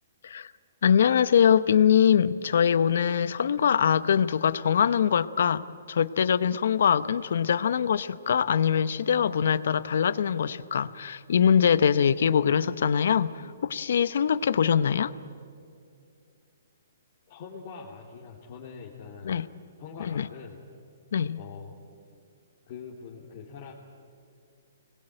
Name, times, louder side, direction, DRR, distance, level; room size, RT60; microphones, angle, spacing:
voice 1, 0.8-15.1 19.2-19.5 20.0-20.3 21.1-21.4, left 8 dB, 70° left, 16 dB, 0.9 m, -23 dB
voice 2, 17.3-19.5 19.8-20.6 21.4-21.8 22.7-23.7, left 6 dB, 40° left, -3 dB, 2.7 m, -43 dB
25.5 x 21.0 x 9.1 m, 2.4 s
hypercardioid pair, 155°, 0 cm